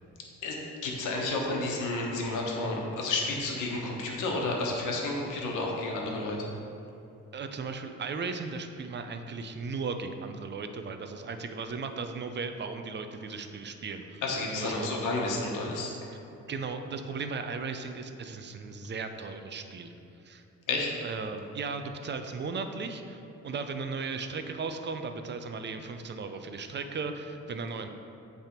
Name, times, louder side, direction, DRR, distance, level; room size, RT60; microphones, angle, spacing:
voice 1, 0.4-6.5 14.2-15.9 20.7-20.9, left 2 dB, 90° left, -1 dB, 1.1 m, -31 dB
voice 2, 7.3-14.2 14.5-14.9 16.5-19.9 20.2-20.4 21.0-27.9, right 4 dB, 35° right, 7 dB, 0.5 m, -36 dB
8.0 x 3.5 x 4.4 m, 2.8 s
cardioid pair, 90°, 30 cm